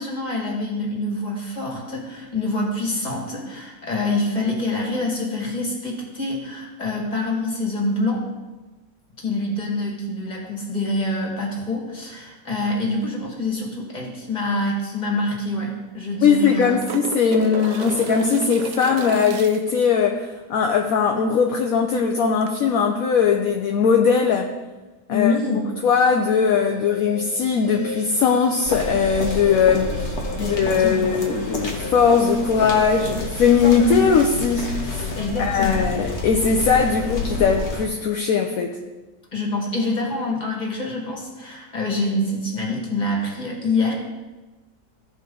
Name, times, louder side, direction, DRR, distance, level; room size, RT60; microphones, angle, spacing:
voice 1, 0.0-8.2 9.2-16.9 25.1-25.7 30.4-31.1 35.2-35.9 39.3-43.9, left 2 dB, 25° left, -1 dB, 1.9 m, -26 dB
sound 1, 14.6-14.7 15.0-15.1 16.1-19.9 22.4-22.5, right 7 dB, 80° right, 1.2 m, -34 dB
voice 2, 16.2-24.5 25.1-25.3 25.8-30.1 30.4-38.8, left 6 dB, 65° left, 3 dB, 1.0 m, -20 dB
sound 2, 25.6-34.1, left 2 dB, 15° right, 1.7 m, -36 dB
sound 3, 28.6-37.9, left 2 dB, 45° left, 1.3 m, -29 dB
14.5 x 4.9 x 3.9 m, 1.2 s
omnidirectional pair, 1.7 m